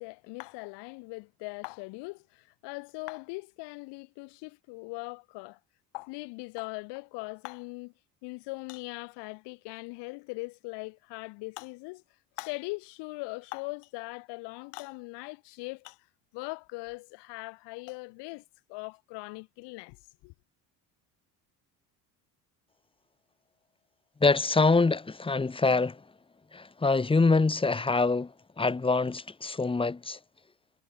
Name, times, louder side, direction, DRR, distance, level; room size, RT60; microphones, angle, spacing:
voice 1, 0.0-5.6 5.9-7.9 8.2-12.0 12.4-16.0 16.3-20.0 20.2-20.3, left 27 dB, 80° left, 4.1 m, -40 dB
voice 2, 24.2-26.0 26.5-28.3 28.6-30.2, left 3 dB, 15° left, 1.1 m, -25 dB
supercardioid pair, 100°, 40 cm